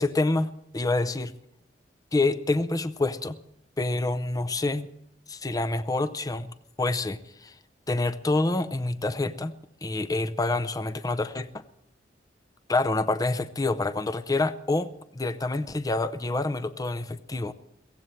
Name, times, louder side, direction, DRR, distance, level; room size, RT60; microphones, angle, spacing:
voice 1, 0.0-1.3 2.1-3.4 3.8-4.9 5.3-7.5 7.9-9.5 9.8-11.6 12.7-17.5, left 2 dB, 20° left, 11 dB, 0.6 m, -27 dB
23.0 x 17.0 x 3.2 m, 0.75 s
head